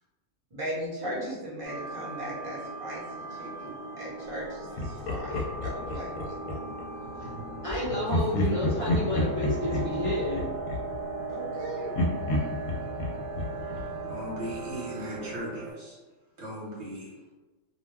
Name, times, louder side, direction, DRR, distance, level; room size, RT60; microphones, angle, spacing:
voice 1, 0.5-6.7 11.3-12.0, equal, 30° right, -6 dB, 0.8 m, -38 dB
sound 1, 1.6-15.7, right 3 dB, 75° right, 1.0 m, -38 dB
Laughter, 4.8-6.9 8.1-11.6 11.9-14.7, left 2 dB, 70° left, 0.9 m, -31 dB
voice 2, 7.0-10.7, equal, 50° left, -8 dB, 0.4 m, -31 dB
voice 3, 14.1-16.0 16.4-17.1, equal, 55° right, -6 dB, 1.1 m, -38 dB
2.5 x 2.2 x 3.3 m, 1.2 s
omnidirectional pair, 1.5 m